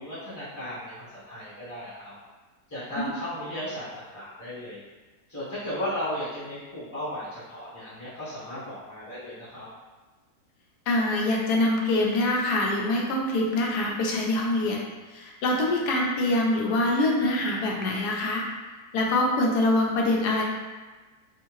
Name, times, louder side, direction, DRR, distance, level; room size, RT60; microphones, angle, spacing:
voice 1, 0.0-2.1 2.7-3.9 4.1-4.8 5.3-9.7, left 1 dB, 15° left, -11 dB, 0.7 m, -35 dB
voice 2, 10.9-14.8 15.1-18.4 18.9-20.4, left 1 dB, 85° left, -1 dB, 1.2 m, -24 dB
3.6 x 2.4 x 3.0 m, 1.3 s
omnidirectional pair, 1.7 m